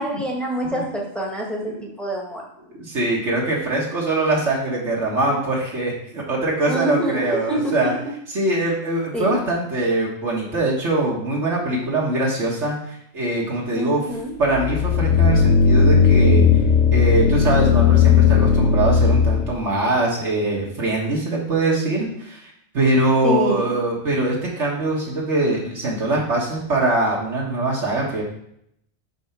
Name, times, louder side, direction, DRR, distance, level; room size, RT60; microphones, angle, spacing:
voice 1, 0.0-2.4 6.7-7.9 9.1-9.4 13.7-14.3 23.2-23.7, right 1 dB, ahead, -2 dB, 1.4 m, -26 dB
voice 2, 2.7-7.9 8.3-14.0 14.4-16.5 16.9-28.2, right 2 dB, 70° right, -4 dB, 1.7 m, -22 dB
sound 1, 14.4-19.5, left 6 dB, 75° left, 0.9 m, -16 dB
5.4 x 4.3 x 5.7 m, 0.72 s
omnidirectional pair, 1.2 m